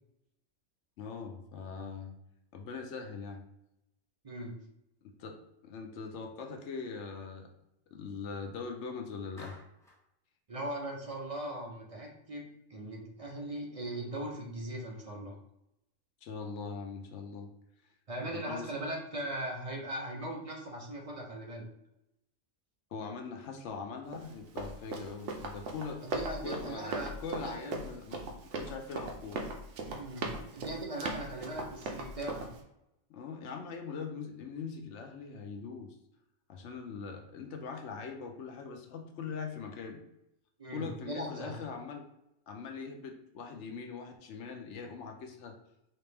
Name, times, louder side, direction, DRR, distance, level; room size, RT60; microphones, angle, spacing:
voice 1, 1.0-2.1 2.5-3.4 5.0-5.4 5.6-7.5 7.9-9.6 16.2-17.5 18.3-18.7 22.9-26.0 26.4-26.9 27.2-28.2 28.5-29.4 33.1-35.9 36.5-40.0 40.7-42.1 42.5-45.6, left 5 dB, 70° left, 3 dB, 0.9 m, -41 dB
Clapping, 9.4-10.0, left 1 dB, 5° left, 0.9 m, -53 dB
voice 2, 10.5-15.4 18.1-21.6 26.1-27.7 29.9-32.4 40.6-41.6, right 1 dB, 40° right, -1 dB, 0.5 m, -39 dB
Run, 24.1-32.6, right 3 dB, 70° right, 1.0 m, -39 dB
4.1 x 2.9 x 3.3 m, 0.82 s
omnidirectional pair, 1.3 m